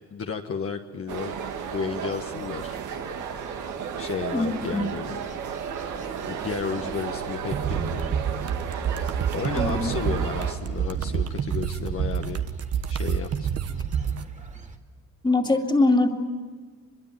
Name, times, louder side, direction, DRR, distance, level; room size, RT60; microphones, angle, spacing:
voice 1, 0.1-1.4 1.7-2.8 4.0-5.1 6.2-8.2 9.3-12.4 12.9-13.5, left 6 dB, 50° left, 3 dB, 1.4 m, -32 dB
sound 1, 1.1-14.8, right 2 dB, 25° right, 2.2 m, -44 dB
sound 2, 1.1-10.5, right 7 dB, 75° right, 2.2 m, -33 dB
voice 2, 4.3-4.8 9.6-9.9 15.2-16.1, left 2 dB, 15° left, 3 dB, 2.5 m, -22 dB
sound 3, 7.5-14.3, right 8 dB, 55° right, 1.3 m, -28 dB
23.0 x 22.5 x 9.3 m, 1.4 s
cardioid pair, 90°, 30 cm